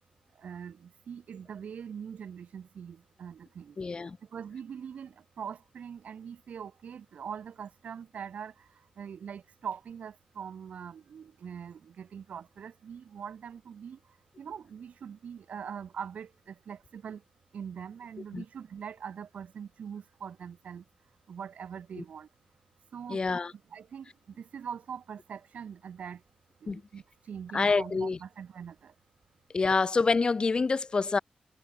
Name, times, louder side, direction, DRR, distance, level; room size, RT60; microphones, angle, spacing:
voice 1, 0.3-17.2 17.5-20.9 21.3-22.3 22.9-23.3 23.7-26.2 26.6-28.9, right 7 dB, 80° right, 5.9 m, -43 dB
voice 2, 3.8-4.2 18.3-18.4 22.0-22.1 23.1-23.5 26.7-26.8 27.5-28.2 29.5-31.2, left 4 dB, 40° left, 1.5 m, -27 dB
wide cardioid pair, 105°, 2 cm